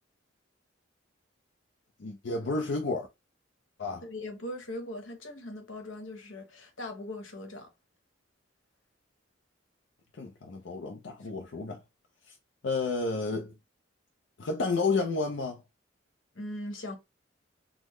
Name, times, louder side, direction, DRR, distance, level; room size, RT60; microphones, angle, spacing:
voice 1, 2.0-3.1 3.8-4.0 10.1-11.8 12.3-12.4 12.6-13.5 14.4-15.6, left 3 dB, 70° left, 0.5 m, -31 dB
voice 2, 4.0-7.7 11.2-11.3 16.3-17.0, left 1 dB, 90° left, 1.0 m, -40 dB
3.7 x 2.1 x 3.1 m
head